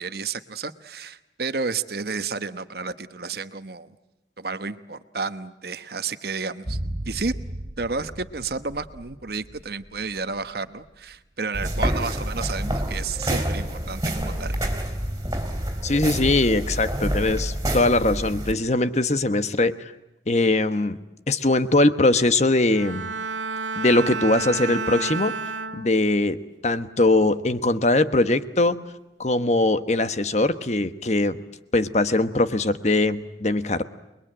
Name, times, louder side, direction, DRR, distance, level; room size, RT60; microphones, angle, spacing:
voice 1, 0.0-4.0 4.4-6.8 7.1-7.3 7.8-14.7, right 4 dB, 55° right, 11 dB, 1.1 m, -31 dB
sound 1, 6.6-10.9 11.1-11.2, right 1 dB, 35° right, 1.2 m, -36 dB
sound 2, 11.5-18.5, right 1 dB, 20° right, 3.6 m, -27 dB
voice 2, 15.8-19.8 20.3-21.0 21.3-23.1 23.8-25.4 25.7-28.8 29.2-31.4 31.7-33.8, left 2 dB, 35° left, 11 dB, 1.1 m, -21 dB
Bowed string instrument, 22.7-26.3 26.7-27.1, right 4 dB, 90° right, 2.1 m, -31 dB
29.0 x 21.5 x 8.9 m, 0.98 s
head